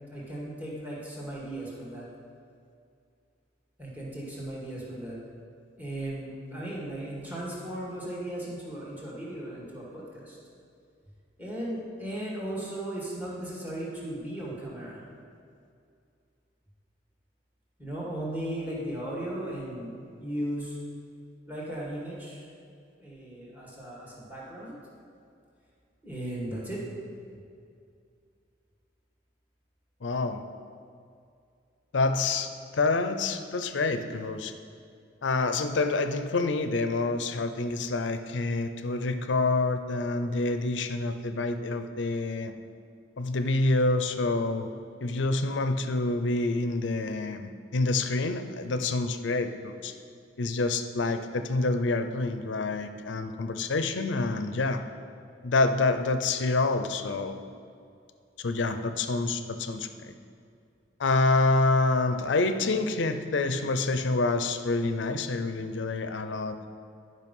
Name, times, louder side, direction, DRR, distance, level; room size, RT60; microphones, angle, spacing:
voice 1, 0.1-2.1 3.8-5.2 5.8-10.4 11.4-15.0 17.8-19.9 20.2-20.8 21.5-22.5 23.0-24.8 26.0-26.8, right 1 dB, 10° right, -5 dB, 1.9 m, -36 dB
voice 2, 30.0-30.4 31.9-34.5 35.2-42.5 43.2-44.7 45.0-49.9 50.4-54.8 55.4-57.4 58.4-60.1 61.0-66.6, left 3 dB, 80° left, 9 dB, 0.6 m, -27 dB
11.0 x 5.4 x 5.4 m, 2.4 s
head